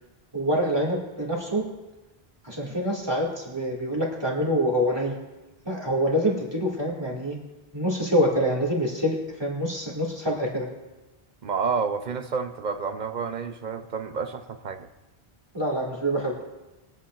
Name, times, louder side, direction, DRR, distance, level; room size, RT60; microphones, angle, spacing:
voice 1, 0.3-1.6 2.4-5.1 5.7-7.4 7.7-10.7 15.5-16.4, equal, 25° right, -3 dB, 2.2 m, -26 dB
voice 2, 11.4-14.9, right 5 dB, 50° right, 9 dB, 0.7 m, -29 dB
21.5 x 8.5 x 2.5 m, 1.1 s
omnidirectional pair, 1.0 m